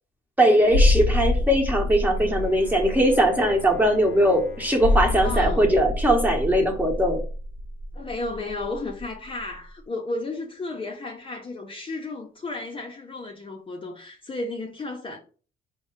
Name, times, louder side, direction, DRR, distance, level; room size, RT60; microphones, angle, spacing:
voice 1, 0.4-7.2, equal, 10° right, 1.2 m, -20 dB
sound 1, 0.7-9.1 9.4-9.5, left 2 dB, 65° right, 0.9 m, -26 dB
Bowed string instrument, 2.1-7.4, left 5 dB, 90° left, 0.5 m, -45 dB
voice 2, 5.2-5.7 7.9-15.2, left 2 dB, 25° left, 0.6 m, -33 dB
4.5 x 2.1 x 4.4 m
cardioid pair, 90°, 20 cm